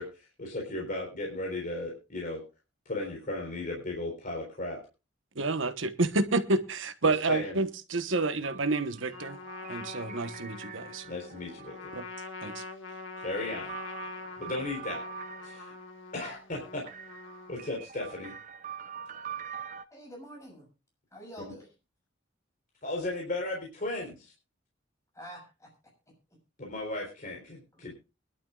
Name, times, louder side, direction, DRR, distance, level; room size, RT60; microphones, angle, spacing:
voice 1, 0.0-2.4 2.9-4.8 7.0-7.6 11.1-11.9 12.9-13.7 14.4-15.0 15.4-15.7 16.1-16.8 17.5-18.3 21.4-21.5 22.8-24.3 26.6-27.9, left 2 dB, 45° left, 4.0 m, -36 dB
voice 2, 5.3-9.4 9.7-11.0 11.9-12.0 12.4-12.6, right 3 dB, 80° right, 1.2 m, -29 dB
sound 1, 8.4-12.2 12.9-16.0 16.9-19.8, right 7 dB, 40° right, 0.7 m, -44 dB
Trumpet, 9.1-17.8, left 3 dB, 85° left, 1.8 m, -44 dB
voice 3, 19.9-20.7 21.1-21.7 25.1-25.7 27.7-27.9, equal, 15° left, 6.7 m, -47 dB
23.5 x 11.5 x 2.4 m
head